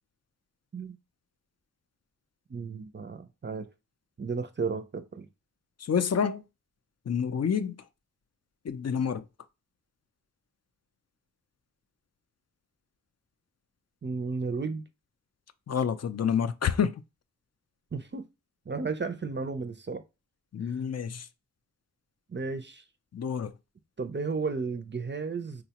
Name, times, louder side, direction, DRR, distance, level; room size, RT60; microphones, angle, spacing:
voice 1, 2.5-3.7 4.2-5.3 14.0-14.8 17.9-18.2 18.7-20.0 22.3-22.8 24.0-25.6, right 4 dB, 35° right, 0.4 m, -33 dB
voice 2, 5.9-6.4 7.1-7.7 8.7-9.2 15.7-16.9 20.5-21.2 23.1-23.5, left 7 dB, 55° left, 0.4 m, -28 dB
3.9 x 2.1 x 2.8 m
wide cardioid pair, 45°, 32 cm